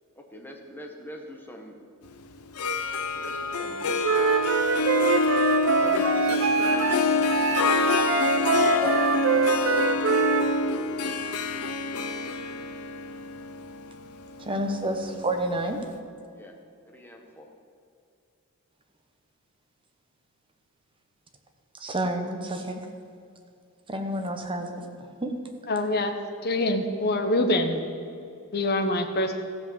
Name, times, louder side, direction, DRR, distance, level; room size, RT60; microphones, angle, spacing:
voice 1, 0.1-1.8 3.1-4.1 5.7-6.9 8.4-9.5 16.3-16.5 16.9-17.5, equal, 10° left, 2 dB, 1.2 m, -42 dB
Harp, 2.4-15.3, left 3 dB, 80° left, 0.7 m, -26 dB
Wind instrument woodwind instrument, 4.0-7.0 7.3-10.5, right 5 dB, 60° right, 0.7 m, -24 dB
voice 2, 14.4-15.8 21.8-22.8 23.9-24.9 25.2-25.4, right 1 dB, 25° right, 5 dB, 1.0 m, -29 dB
voice 3, 25.7-26.1 26.4-27.8 28.5-29.4, left 1 dB, 45° left, 6 dB, 1.0 m, -25 dB
15.0 x 5.3 x 7.2 m, 2.5 s
head